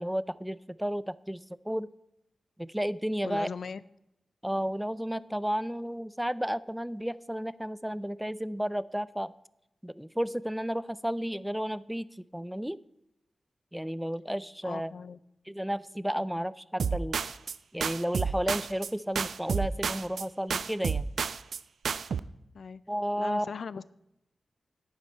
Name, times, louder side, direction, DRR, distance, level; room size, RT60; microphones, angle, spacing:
voice 1, 0.0-1.9 2.6-3.5 4.4-9.3 9.8-12.1 12.3-12.8 13.7-14.9 15.5-17.2 17.7-21.1 22.9-23.5, equal, 5° right, 18 dB, 0.3 m, -32 dB
voice 2, 3.2-3.8 14.6-15.2 22.5-22.8 23.2-23.8, left 5 dB, 70° left, 18 dB, 0.4 m, -38 dB
sound 1, 16.8-17.6 17.8-18.9 19.2-20.2 20.5-21.6 21.8-22.2, right 6 dB, 80° right, 0.3 m, -30 dB
10.5 x 9.2 x 4.4 m, 0.86 s
wide cardioid pair, 95°, 0 cm